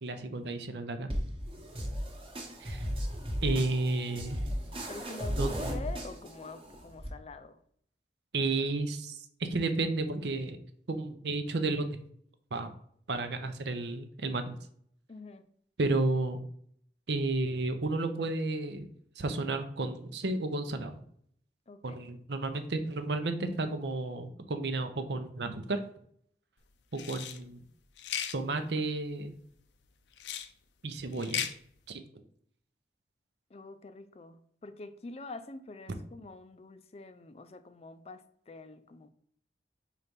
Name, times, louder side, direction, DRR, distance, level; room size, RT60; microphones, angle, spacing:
voice 1, 0.0-1.1 2.6-2.8 3.4-4.4 5.4-5.7 8.3-10.6 10.9-11.9 12.5-12.7 13.1-14.5 15.8-16.4 17.1-18.9 19.2-21.0 21.8-25.8 26.9-27.6 28.3-29.3 30.8-31.4 31.9-32.0, right 2 dB, 75° right, 0.7 m, -32 dB
sound 1, 1.1-7.1, equal, 30° right, 1.0 m, -36 dB
voice 2, 4.9-7.6 15.1-15.4 21.7-22.1 33.5-39.1, left 3 dB, 35° left, 0.4 m, -45 dB
sound 2, 26.9-27.4 28.0-28.4 30.2-30.5 31.1-31.5, left 9 dB, 85° left, 0.5 m, -35 dB
4.5 x 4.1 x 5.3 m
head